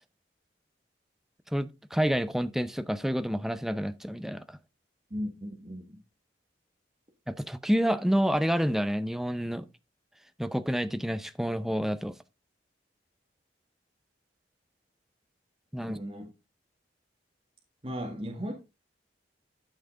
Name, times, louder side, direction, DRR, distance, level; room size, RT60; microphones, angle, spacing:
voice 1, 1.5-4.6 7.3-9.7 10.4-12.2 15.7-16.0, equal, ahead, 0.5 m, -28 dB
voice 2, 5.1-6.0 15.9-16.3 17.8-18.5, equal, 30° right, 1.9 m, -36 dB
12.5 x 5.8 x 3.8 m
head